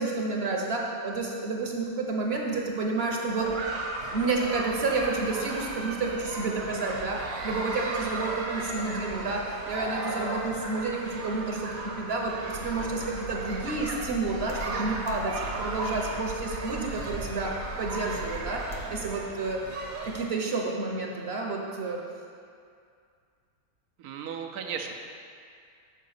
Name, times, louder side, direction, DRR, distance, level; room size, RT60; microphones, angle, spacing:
voice 1, 0.0-3.8 4.1-22.0, right 3 dB, 50° right, 0 dB, 0.9 m, -30 dB
sound 1, 3.4-20.2, right 2 dB, 70° right, 1.3 m, -36 dB
sound 2, 12.5-19.1, equal, 55° left, 1.0 m, -40 dB
voice 2, 24.0-24.9, right 7 dB, 90° right, 3 dB, 1.1 m, -36 dB
6.8 x 4.7 x 6.4 m, 2.3 s
omnidirectional pair, 1.5 m